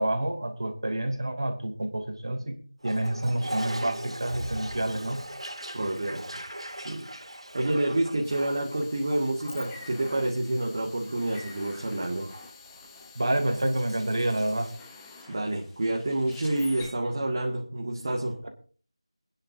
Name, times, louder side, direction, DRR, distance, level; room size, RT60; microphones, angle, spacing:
voice 1, 0.0-2.5 2.8-5.2 13.1-14.7 18.4-18.5, right 1 dB, 50° right, 5 dB, 2.7 m, -28 dB
Toilet flush, 2.8-14.8, right 1 dB, 75° right, 2.9 m, -41 dB
voice 2, 5.7-6.2 6.8-7.1 7.5-12.3 15.3-18.4, right 1 dB, 35° right, -1 dB, 2.0 m, -28 dB
sound 1, 8.2-16.9, left 3 dB, 5° left, 1.2 m, -47 dB
25.5 x 10.0 x 2.7 m, 0.39 s
figure-of-eight pair, 170°, 3 cm